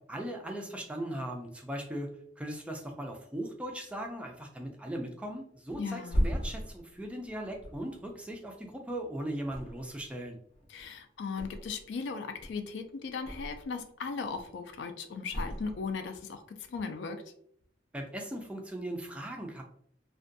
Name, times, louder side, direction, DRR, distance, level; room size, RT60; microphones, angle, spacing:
voice 1, 0.1-10.4 17.9-19.6, right 1 dB, 5° right, 2 dB, 0.3 m, -38 dB
Thump thud, 5.7-9.0 9.4-10.2 10.5-12.0 12.3-13.8 14.2-14.7 15.3-16.3 16.6-16.8, equal, 35° left, 0.6 m, -36 dB
voice 2, 5.8-6.3 10.7-16.4 16.7-17.2, left 5 dB, 75° left, 8 dB, 0.4 m, -37 dB
2.5 x 2.2 x 2.5 m, 0.65 s
head